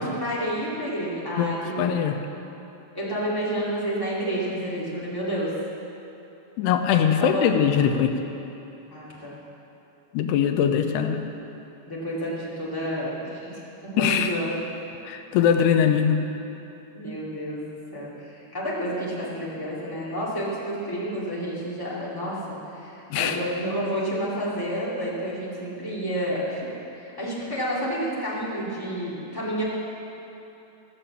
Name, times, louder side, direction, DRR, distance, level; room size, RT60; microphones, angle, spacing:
voice 1, 0.0-2.0 2.9-5.5 7.2-7.6 8.9-9.4 11.8-14.5 16.9-29.6, equal, 10° left, -8 dB, 1.3 m, -30 dB
voice 2, 1.4-2.1 6.6-8.1 10.1-11.2 14.0-14.3 15.1-16.2 23.1-23.4, left 8 dB, 85° left, 5 dB, 2.7 m, -22 dB
14.5 x 7.0 x 7.3 m, 3.0 s
omnidirectional pair, 4.8 m